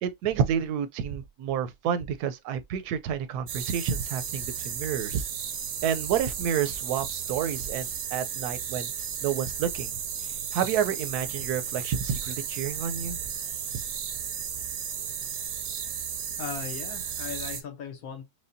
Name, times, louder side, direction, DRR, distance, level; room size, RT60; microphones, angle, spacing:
voice 1, 0.0-5.3 5.8-8.9 9.2-9.9 10.2-13.2, right 8 dB, 85° right, 1.1 m, -29 dB
sound 1, 3.5-17.6, right 8 dB, 60° right, 0.7 m, -34 dB
voice 2, 16.4-18.2, left 7 dB, 70° left, 1.3 m, -37 dB
4.9 x 2.2 x 2.6 m
omnidirectional pair, 1.6 m